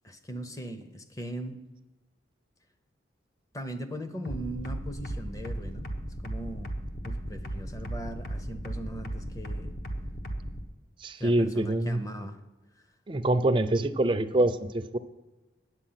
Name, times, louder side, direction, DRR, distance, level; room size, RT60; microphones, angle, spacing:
voice 1, 0.0-1.6 3.5-6.0 6.2-6.8 7.0-9.7 11.2-12.4, right 1 dB, 20° left, 8 dB, 0.7 m, -39 dB
sound 1, 4.2-10.6, right 1 dB, 55° left, 1.0 m, -35 dB
voice 2, 11.0-12.0 13.1-15.0, right 1 dB, 25° right, 10 dB, 0.4 m, -25 dB
9.0 x 8.2 x 5.7 m, 1.1 s
head